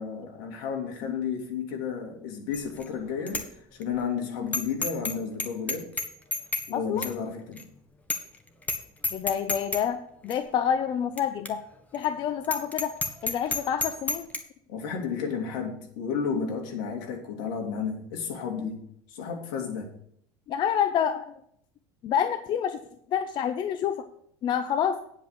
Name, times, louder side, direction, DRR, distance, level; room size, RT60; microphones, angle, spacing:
voice 1, 0.0-3.4 3.8-5.9 6.7-7.7 14.7-18.8 19.1-19.9, left 6 dB, 80° left, 2 dB, 3.0 m, -32 dB
Bicycle bell, 2.5-2.9 3.3-3.4 3.8-3.9 4.5-5.1 5.4-6.7 7.0-7.1 7.6-7.7 8.1-8.4 8.6-8.8 9.0-9.8 10.3-10.4 11.2-11.3 11.5-11.6 11.9-12.1 12.4-14.4, left 3 dB, 15° left, 1.4 m, -29 dB
voice 2, 6.7-7.1 9.1-11.6 11.9-12.9 13.2-14.2 20.5-21.3 22.0-22.8 23.1-24.0 24.4-25.0, left 8 dB, 45° left, 9 dB, 0.7 m, -28 dB
9.6 x 5.4 x 8.1 m, 0.67 s
supercardioid pair, 110°, 10 cm